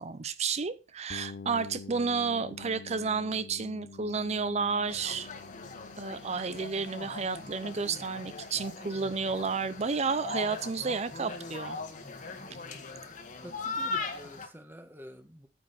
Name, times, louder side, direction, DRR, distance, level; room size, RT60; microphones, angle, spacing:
voice 1, 0.0-5.3 6.0-11.8, right 5 dB, 35° right, 14 dB, 0.5 m, -31 dB
sound 1, 1.1-10.8, left 4 dB, 60° left, 0.6 m, -49 dB
sound 2, 4.9-14.5, left 3 dB, 45° left, 1.6 m, -40 dB
voice 2, 13.4-15.5, equal, 10° right, 7 dB, 1.4 m, -48 dB
9.4 x 8.7 x 4.2 m, 0.31 s
head